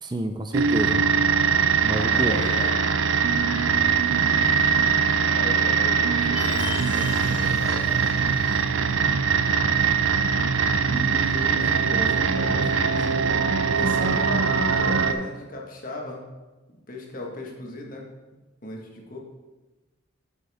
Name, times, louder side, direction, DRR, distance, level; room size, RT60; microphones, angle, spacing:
voice 1, 0.0-1.0 1.8-2.4, right 1 dB, 20° right, 6 dB, 0.5 m, -28 dB
sound 1, 0.5-15.1, right 6 dB, 80° right, 0.5 m, -22 dB
voice 2, 1.9-2.7 5.2-8.3 10.9-13.2 13.7-16.3 16.9-18.1 18.6-19.2, left 1 dB, 45° left, 0 dB, 1.5 m, -36 dB
Chime, 6.3-8.8, left 3 dB, 5° right, 1.8 m, -40 dB
8.1 x 7.7 x 3.5 m, 1.2 s
head